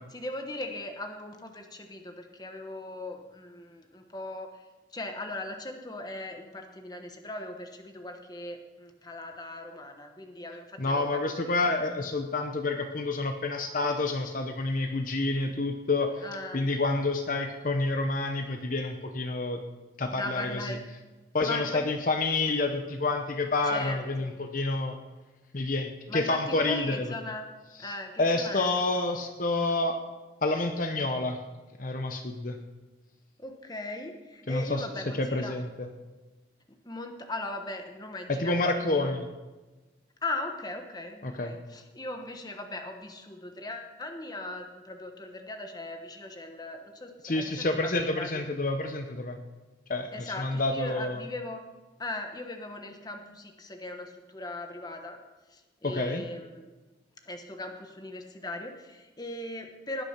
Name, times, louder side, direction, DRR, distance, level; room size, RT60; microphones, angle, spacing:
voice 1, 0.1-11.6 16.2-16.7 20.1-20.8 21.4-21.8 23.6-24.3 26.1-27.5 27.8-28.7 33.4-35.6 36.7-39.1 40.2-48.3 50.1-51.6 52.0-55.2 55.5-56.6 57.3-60.0, left 2 dB, 20° left, 5 dB, 1.2 m, -39 dB
voice 2, 10.8-16.2 16.5-19.6 20.0-20.8 21.3-25.0 25.5-27.1 27.8-30.0 30.4-31.4 31.8-32.6 34.5-34.9 35.1-35.9 38.3-39.2 41.2-41.5 47.2-49.4 49.9-51.2 55.8-56.2, left 2 dB, 45° left, 5 dB, 0.9 m, -28 dB
19.5 x 6.9 x 5.9 m, 1.2 s
head